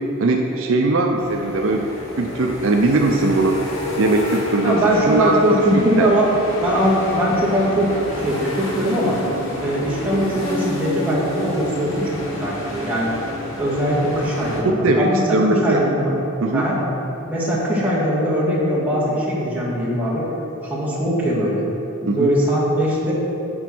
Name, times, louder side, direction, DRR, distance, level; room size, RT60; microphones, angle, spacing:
voice 1, 0.2-1.9 2.2-3.6 4.0-6.1 14.8-15.8 16.4-16.7 22.1-22.3, right 2 dB, 60° right, 2 dB, 0.5 m, -20 dB
sound 1, 1.2-14.6, left 1 dB, 60° left, 1.3 m, -29 dB
voice 2, 4.6-6.3 6.6-9.2 9.6-13.1 13.6-15.2 15.6-16.2 16.5-16.8 17.3-20.3 20.6-21.6 22.0-23.1, equal, 10° right, -8 dB, 1.8 m, -21 dB
8.6 x 4.5 x 6.0 m, 2.8 s
head